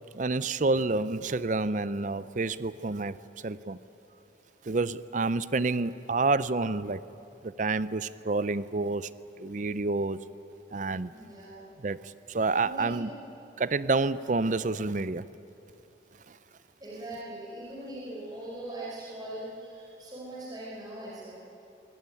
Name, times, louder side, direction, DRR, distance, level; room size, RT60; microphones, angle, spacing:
voice 1, 0.1-3.2 3.4-3.8 4.7-7.0 7.4-9.1 9.4-10.2 10.7-11.1 11.8-12.0 12.3-13.1 13.6-15.2, right 3 dB, 40° right, 16 dB, 0.5 m, -28 dB
voice 2, 11.1-11.6 12.6-13.2 16.8-21.3, right 1 dB, 20° right, -6 dB, 4.8 m, -41 dB
23.0 x 18.5 x 9.7 m, 2.9 s
head